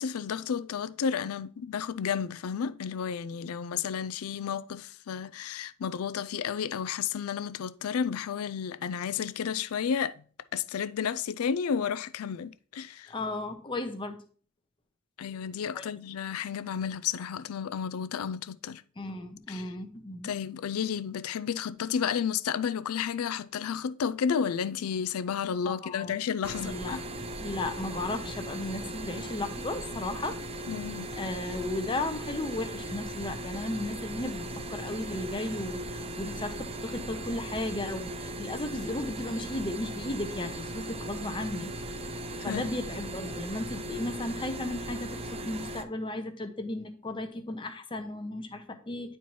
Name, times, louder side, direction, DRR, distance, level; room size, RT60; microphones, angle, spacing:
voice 1, 0.0-10.2 10.5-13.1 15.2-18.8 19.5-19.7 20.2-27.0 30.7-31.1 42.4-42.6, left 7 dB, 90° left, 0.4 m, -32 dB
voice 2, 13.1-14.2 15.7-15.9 19.0-20.3 25.6-26.2 26.6-27.0 27.4-30.4 31.2-41.7 42.4-49.2, left 2 dB, 25° left, 0.8 m, -35 dB
sound 1, 26.4-45.8, right 1 dB, 25° right, 0.4 m, -38 dB
9.9 x 4.3 x 3.1 m
head